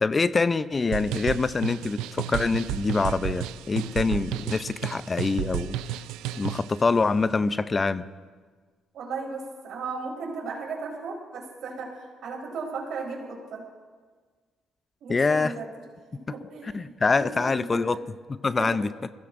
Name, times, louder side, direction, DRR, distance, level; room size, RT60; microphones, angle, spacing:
voice 1, 0.0-5.7 6.4-8.0 15.1-15.5 16.7-18.0 18.3-18.9, left 4 dB, 35° left, 14 dB, 0.5 m, -25 dB
sound 1, 0.9-6.7, right 13 dB, 90° right, 0.4 m, -32 dB
voice 2, 8.9-13.7 15.0-15.7 16.1-17.9 18.6-18.8, right 4 dB, 75° right, -1 dB, 4.0 m, -36 dB
22.5 x 15.5 x 2.6 m, 1.5 s
supercardioid pair, 70°, 0 cm